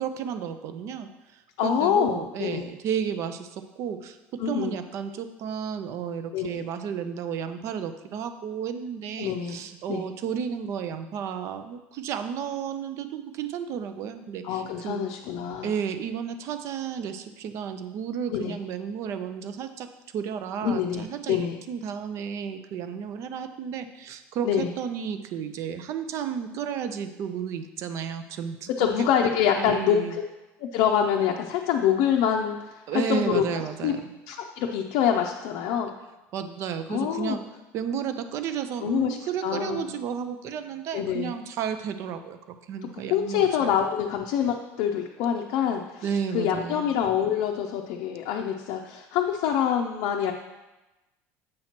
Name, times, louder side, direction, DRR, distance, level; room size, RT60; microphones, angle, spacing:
voice 1, 0.0-15.1 15.6-19.9 20.1-28.9 29.2-29.3 29.6-30.2 32.9-34.0 36.3-37.4 37.7-42.4 42.7-43.7 46.0-46.8, right 7 dB, 50° right, 9 dB, 0.5 m, -32 dB
voice 2, 1.6-2.7 4.4-4.8 6.3-6.6 9.2-9.6 9.9-10.1 14.4-15.7 18.3-18.6 20.6-21.6 24.4-24.7 28.8-30.2 30.6-33.5 33.8-33.9 34.3-35.9 36.9-37.4 38.8-39.9 40.9-41.4 43.1-50.3, left 8 dB, 70° left, 1 dB, 0.5 m, -26 dB
7.6 x 2.9 x 5.8 m, 1.1 s
cardioid pair, 130°, 6 cm